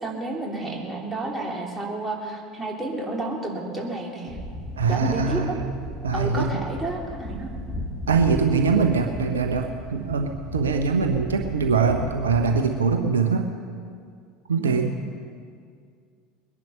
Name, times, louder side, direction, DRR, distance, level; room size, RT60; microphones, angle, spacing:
voice 1, 0.0-4.4 4.9-5.5 6.1-7.5 8.0-8.2 14.6-14.9, right 2 dB, 10° right, -2 dB, 3.2 m, -31 dB
sound 1, 4.3-13.0, left 1 dB, 15° left, 3.0 m, -36 dB
voice 2, 4.8-5.5 6.0-6.6 8.1-13.5 14.5-15.0, right 5 dB, 75° right, 5 dB, 0.9 m, -22 dB
21.0 x 11.0 x 5.5 m, 2.2 s
figure-of-eight pair, 70°, 0 cm